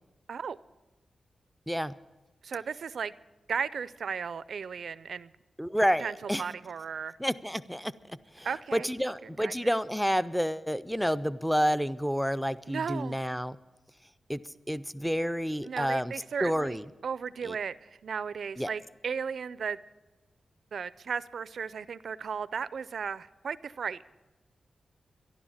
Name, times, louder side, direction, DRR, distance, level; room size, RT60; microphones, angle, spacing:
voice 1, 2.4-3.1 3.5-5.3 6.0-7.2 8.4-9.1 9.4-9.6 12.7-13.2 15.6-16.8 17.0-19.8 20.7-24.0, right 6 dB, 70° right, 0.4 m, -35 dB
voice 2, 5.6-6.4 7.2-7.9 8.3-8.5 8.7-13.6 14.3-14.4 14.7-16.1 16.4-16.8 17.4-17.5 18.6-18.7, equal, ahead, 0.4 m, -29 dB
12.5 x 11.5 x 7.2 m
wide cardioid pair, 125°, 0 cm